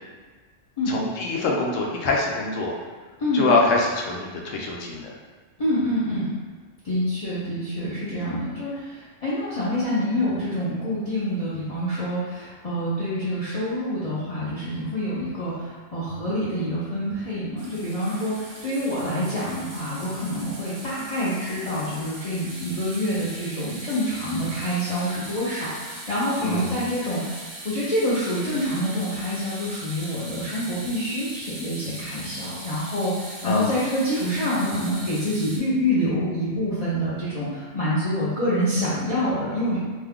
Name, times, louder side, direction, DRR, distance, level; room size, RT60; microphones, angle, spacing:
voice 1, 0.9-2.7 3.3-5.1 26.4-26.8 33.4-33.7, left 3 dB, 85° left, -1 dB, 1.0 m, -24 dB
voice 2, 5.6-6.3 6.8-39.8, equal, 40° left, -10 dB, 0.5 m, -26 dB
sound 1, 17.6-35.6, right 1 dB, 65° right, 0.8 m, -40 dB
2.7 x 2.3 x 3.5 m, 1.4 s
omnidirectional pair, 1.3 m